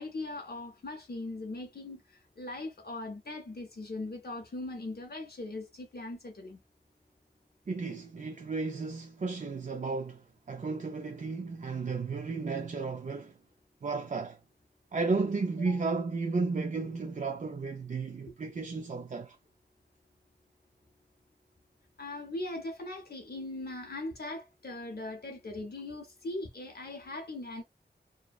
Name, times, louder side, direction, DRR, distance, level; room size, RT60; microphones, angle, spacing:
voice 1, 0.0-6.6 15.7-15.8 22.0-27.6, left 2 dB, 60° left, 0.6 m, -40 dB
voice 2, 7.7-13.4 13.8-14.4 14.9-19.4, right 4 dB, 45° right, 0.4 m, -33 dB
2.6 x 2.0 x 2.3 m
wide cardioid pair, 70°, 18 cm